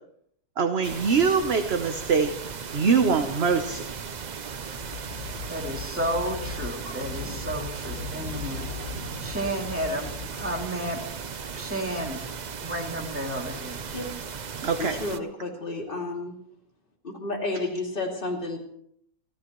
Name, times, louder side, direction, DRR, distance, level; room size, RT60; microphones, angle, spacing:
voice 1, 0.6-2.3 2.7-3.9 14.6-15.0, right 5 dB, 45° right, 6 dB, 1.0 m, -23 dB
sound 1, 0.8-15.2, right 6 dB, 80° right, 0.4 m, -37 dB
sound 2, 4.8-10.6, left 4 dB, 65° left, 3.8 m, -38 dB
voice 2, 5.5-11.0 11.6-12.2 12.6-14.0, right 1 dB, 5° right, -1 dB, 2.6 m, -32 dB
voice 3, 14.8-16.3 17.0-18.6, left 2 dB, 30° left, 0 dB, 2.9 m, -31 dB
30.0 x 13.0 x 3.1 m, 0.70 s
omnidirectional pair, 1.8 m